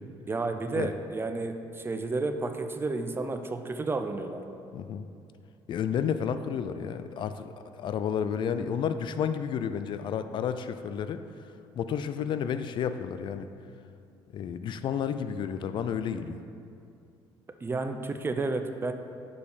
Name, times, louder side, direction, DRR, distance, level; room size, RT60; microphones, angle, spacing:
voice 1, 0.3-4.4 17.6-18.9, right 3 dB, 25° right, 7 dB, 0.5 m, -31 dB
voice 2, 4.7-5.1 5.7-11.2 11.8-13.5 14.3-16.4, left 7 dB, 55° left, 11 dB, 0.3 m, -31 dB
6.4 x 5.5 x 5.0 m, 2.5 s
cardioid pair, 90°, 10 cm